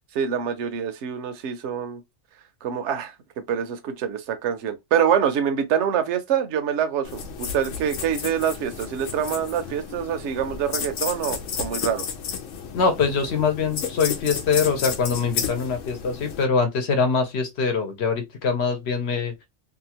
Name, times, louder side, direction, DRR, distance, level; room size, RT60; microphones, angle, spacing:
voice 1, 0.1-2.0 2.6-3.1 3.5-12.1, right 8 dB, 70° right, 0.9 m, -25 dB
sound 1, 7.0-16.4, left 7 dB, 90° left, 1.0 m, -32 dB
voice 2, 12.7-19.3, left 5 dB, 65° left, 1.0 m, -23 dB
2.7 x 2.3 x 2.8 m
omnidirectional pair, 1.3 m